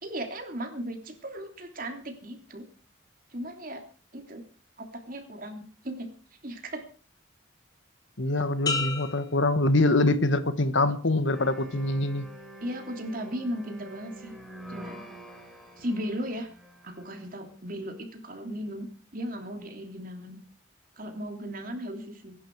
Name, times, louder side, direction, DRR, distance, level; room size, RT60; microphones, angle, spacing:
voice 1, 0.0-2.6 3.3-3.8 4.1-4.4 4.8-6.1 6.4-6.8 12.6-14.3 14.7-15.0 15.8-16.5 16.8-18.9 19.1-20.4 21.0-22.3, equal, 45° right, 3.1 m, -36 dB
voice 2, 8.2-12.2, left 2 dB, 70° left, 1.5 m, -24 dB
sound 1, 8.7-10.4 10.9-11.4, left 3 dB, 20° left, 3.4 m, -34 dB
sound 2, 11.3-17.3, equal, ahead, 3.4 m, -46 dB
23.5 x 11.5 x 4.7 m
head